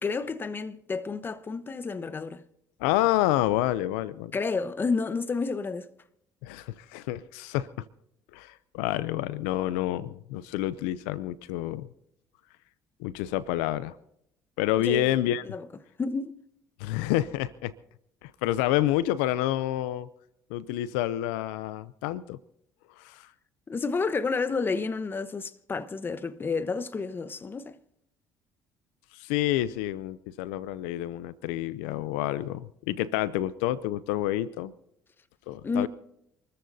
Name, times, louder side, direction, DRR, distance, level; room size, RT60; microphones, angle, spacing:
voice 1, 0.0-2.4 4.3-5.9 14.9-15.2 15.4-15.7 16.0-16.4 23.7-27.7 35.6-35.9, left 4 dB, 30° left, 1.0 m, -30 dB
voice 2, 2.8-4.3 6.4-7.7 8.3-11.9 13.0-13.9 14.6-15.4 16.8-17.7 18.2-20.1 20.5-22.4 23.0-23.3 29.1-34.7 35.5-35.9, left 14 dB, 90° left, 0.5 m, -28 dB
27.5 x 14.0 x 2.7 m
supercardioid pair, 75°, 7 cm